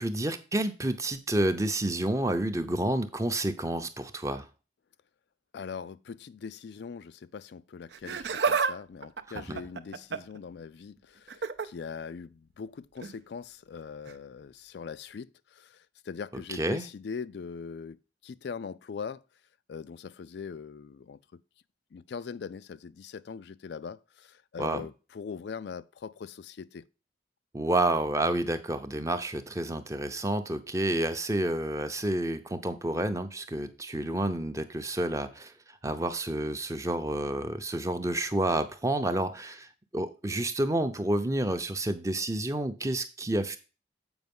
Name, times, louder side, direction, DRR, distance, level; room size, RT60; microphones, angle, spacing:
voice 1, 0.0-4.5 9.5-9.6 16.5-16.8 24.6-24.8 27.5-43.6, right 1 dB, 15° right, 0.6 m, -29 dB
voice 2, 5.5-19.2 19.7-21.4 21.9-26.9, left 6 dB, 60° left, 0.3 m, -41 dB
Laughter, 7.9-8.7 9.0-10.4 11.3-11.7 13.0-13.2 14.1-14.2, right 5 dB, 65° right, 0.6 m, -30 dB
7.9 x 5.2 x 5.3 m
head